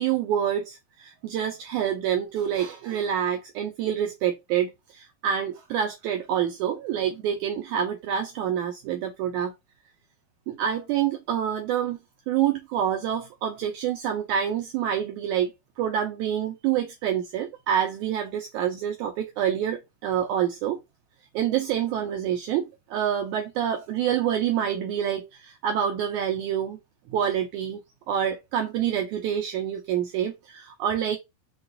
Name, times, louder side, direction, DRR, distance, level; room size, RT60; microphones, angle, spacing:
voice 1, 0.0-9.5 10.5-12.0 12.3-20.8 21.3-26.8 27.1-27.8 28.1-31.2, right 9 dB, 85° right, 1.7 m, -27 dB
5.7 x 2.4 x 3.9 m
omnidirectional pair, 4.1 m